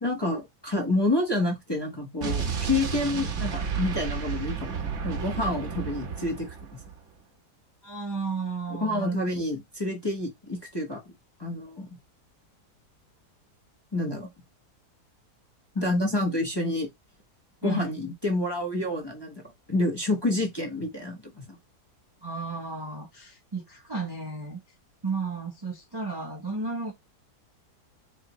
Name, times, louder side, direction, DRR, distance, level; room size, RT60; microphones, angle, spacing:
voice 1, 0.0-6.5 8.7-11.0 11.4-12.0 13.9-14.3 15.7-16.9 17.6-19.4 19.7-21.6, left 2 dB, 20° left, 0.7 m, -28 dB
Explosion, 2.2-7.0, right 6 dB, 55° right, 1.1 m, -32 dB
voice 2, 7.8-9.3 17.6-18.0 22.2-24.6 25.0-26.9, right 4 dB, 25° right, 0.5 m, -33 dB
3.9 x 3.3 x 2.9 m
omnidirectional pair, 1.7 m